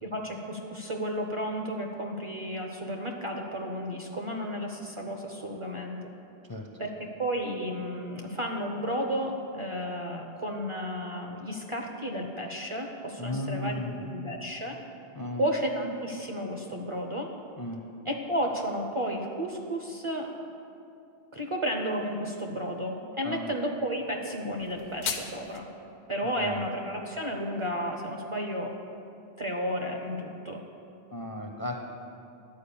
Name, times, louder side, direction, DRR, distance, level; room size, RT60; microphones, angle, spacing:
voice 1, 0.0-6.1 6.8-14.7 15.4-17.3 18.0-20.3 21.3-25.7 26.1-28.7 29.4-30.6, equal, 35° right, 2 dB, 0.6 m, -32 dB
voice 2, 13.2-14.0 15.1-15.5 17.6-17.8 23.2-23.5 26.2-26.5 31.1-31.8, left 1 dB, 30° left, 2 dB, 0.4 m, -35 dB
sound 1, 24.6-25.6, left 7 dB, 90° left, 1.0 m, -35 dB
10.5 x 4.7 x 6.9 m, 2.6 s
omnidirectional pair, 1.1 m